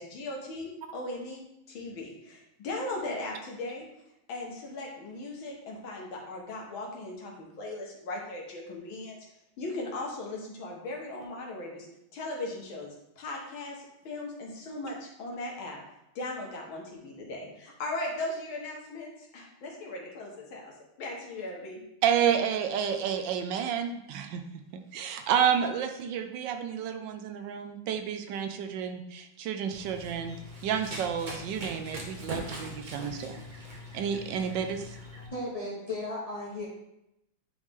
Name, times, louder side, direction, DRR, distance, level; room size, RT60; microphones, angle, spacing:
voice 1, 0.0-3.9 4.3-9.2 9.6-11.9 12.1-15.8 16.2-21.8, left 2 dB, 70° left, -1 dB, 2.1 m, -38 dB
voice 2, 22.0-24.4 24.7-30.4 30.6-33.4 33.9-35.0, right 8 dB, 70° right, 7 dB, 1.1 m, -30 dB
Run, 29.7-35.3, equal, 45° right, 0.6 m, -41 dB
voice 3, 35.2-36.7, left 2 dB, 30° left, -4 dB, 0.6 m, -35 dB
9.3 x 3.2 x 3.6 m, 0.84 s
omnidirectional pair, 2.3 m